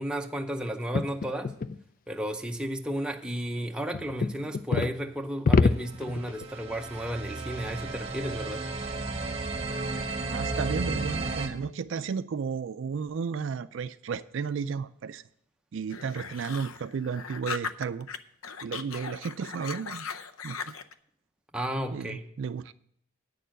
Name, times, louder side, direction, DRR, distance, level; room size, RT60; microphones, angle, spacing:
voice 1, 0.0-1.5 2.1-8.7 21.5-22.3, equal, 5° right, 0.6 m, -33 dB
sound 1, 0.9-1.8 3.9-5.0 5.4-6.4, left 4 dB, 40° left, 0.3 m, -25 dB
sound 2, 6.1-11.5, right 3 dB, 30° right, 1.0 m, -33 dB
voice 2, 10.3-15.2 15.7-18.1 18.6-20.0 20.4-20.7 21.9-22.7, right 6 dB, 65° right, 0.4 m, -33 dB
sound 3, 15.9-18.2 18.4-20.9, left 6 dB, 85° left, 0.6 m, -38 dB
9.1 x 6.8 x 7.5 m
head